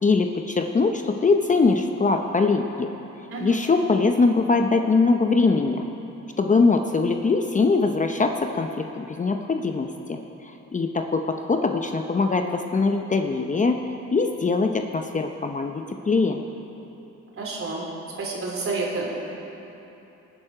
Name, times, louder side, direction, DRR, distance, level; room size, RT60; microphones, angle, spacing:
voice 1, 0.0-2.9 3.4-5.9 6.4-10.2 10.7-13.8 14.1-16.4, left 4 dB, 25° left, 5 dB, 0.7 m, -22 dB
voice 2, 17.4-17.9 18.2-19.1, right 3 dB, 45° right, -2 dB, 3.4 m, -29 dB
19.0 x 9.1 x 4.9 m, 3.0 s
cardioid pair, 90°, 30 cm